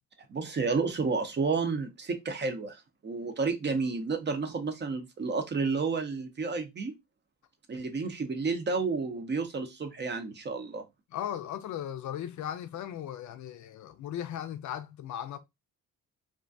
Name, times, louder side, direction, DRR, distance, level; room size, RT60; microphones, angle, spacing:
voice 1, 0.3-6.9 7.7-10.8, right 4 dB, 35° right, 0.6 m, -31 dB
voice 2, 11.1-15.4, left 10 dB, 60° left, 0.5 m, -37 dB
2.4 x 2.2 x 2.5 m
cardioid pair, 80°, 33 cm